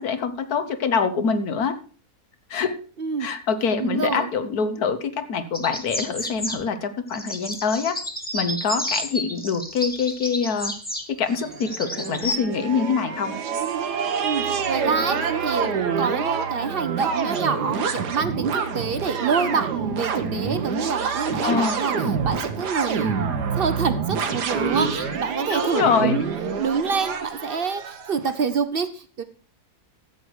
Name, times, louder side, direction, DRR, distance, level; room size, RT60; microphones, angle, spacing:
voice 1, 0.0-1.7 2.5-2.8 3.2-7.9 8.3-10.7 11.1-13.3 21.4-21.8 25.0-25.1 25.5-26.2, left 5 dB, 70° left, 10 dB, 1.5 m, -25 dB
voice 2, 3.0-3.3 3.8-4.3 14.2-29.2, right 5 dB, 55° right, 12 dB, 0.6 m, -27 dB
sound 1, 5.5-6.6 7.1-12.4, left 1 dB, 5° left, 1.5 m, -31 dB
sound 2, 11.3-28.4, right 6 dB, 85° right, 1.7 m, -27 dB
13.5 x 8.1 x 4.7 m, 0.39 s
omnidirectional pair, 1.7 m